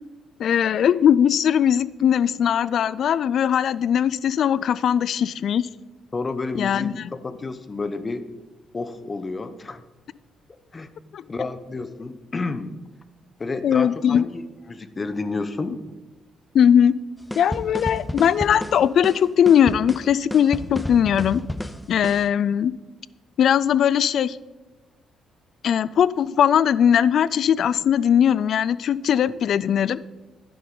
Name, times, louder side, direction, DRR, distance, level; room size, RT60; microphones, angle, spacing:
voice 1, 0.4-5.7 6.5-7.1 11.1-11.2 13.6-14.2 16.5-16.9 17.4-21.4 21.9-22.7 23.4-24.4 25.6-30.0, left 9 dB, 65° left, 19 dB, 0.3 m, -19 dB
voice 2, 6.1-8.2 8.7-9.8 10.7-10.9 11.3-12.8 13.4-15.8, left 3 dB, 30° left, 12 dB, 0.9 m, -30 dB
sound 1, 17.3-22.3, left 1 dB, 10° left, 0.6 m, -32 dB
11.5 x 10.0 x 3.9 m, 1.2 s
cardioid pair, 90°, 0 cm